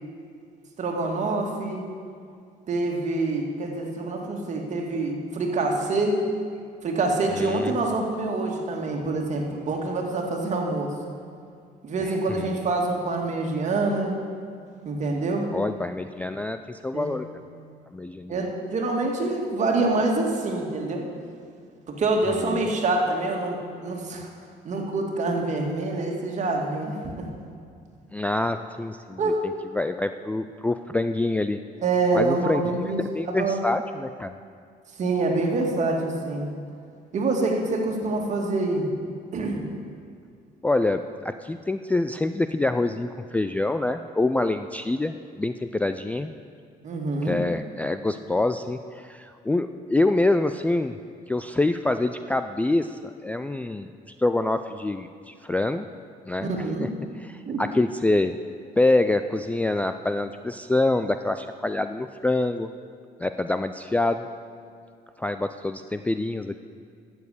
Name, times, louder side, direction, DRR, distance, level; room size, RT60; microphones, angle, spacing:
voice 1, 0.8-1.9 2.7-6.1 6.8-10.9 11.8-14.2 14.9-15.5 16.9-17.2 18.3-21.0 22.0-24.3 24.6-27.3 29.2-29.4 31.8-33.6 35.0-36.5 37.1-38.9 39.3-39.7 46.8-47.4 56.4-56.9 57.4-57.6, right 2 dB, 45° right, 1 dB, 2.2 m, -26 dB
voice 2, 7.3-7.8 12.0-12.6 15.5-17.3 17.9-18.5 22.4-22.6 28.1-31.6 32.1-34.3 40.6-46.3 47.2-50.9 51.3-53.9 54.2-55.9 56.3-56.5 56.8-56.9 57.2-58.4 58.8-62.7 63.2-64.3 65.2-66.6, left 2 dB, 10° left, 9 dB, 0.3 m, -26 dB
13.0 x 7.2 x 8.4 m, 2.3 s
cardioid pair, 110°, 17 cm